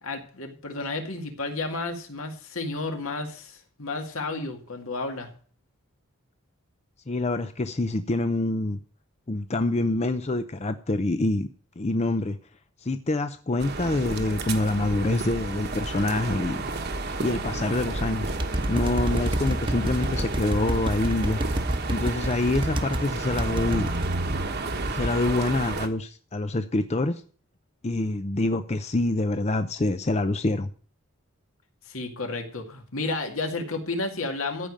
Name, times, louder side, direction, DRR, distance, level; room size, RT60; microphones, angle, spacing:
voice 1, 0.0-5.3 31.9-34.7, left 3 dB, 75° left, 4 dB, 2.2 m, -32 dB
voice 2, 7.1-8.8 9.3-11.5 11.8-12.4 12.8-16.6 17.2-18.3 18.7-21.4 21.9-23.9 24.9-27.2 27.8-30.7, left 2 dB, 30° left, 10 dB, 0.6 m, -26 dB
sound 1, 13.6-25.9, right 2 dB, 50° right, 1.3 m, -31 dB
sound 2, 18.3-23.0 23.4-24.2, right 1 dB, 25° right, 1.0 m, -28 dB
14.5 x 5.1 x 8.6 m, 0.44 s
head